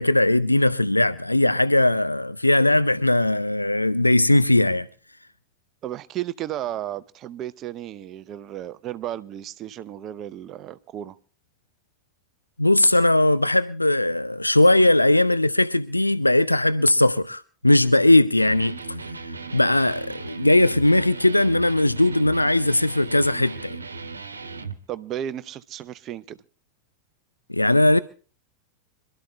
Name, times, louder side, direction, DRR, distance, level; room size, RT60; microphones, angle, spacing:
voice 1, 0.0-4.9 12.6-23.8 27.5-28.0, left 1 dB, 85° left, 0.5 m, -19 dB
voice 2, 5.8-11.2 24.9-26.4, right 11 dB, 35° right, 0.6 m, -33 dB
Electric guitar, 18.4-24.8, right 4 dB, 75° right, 1.2 m, -37 dB
26.5 x 12.5 x 2.3 m
figure-of-eight pair, 90°, 0 cm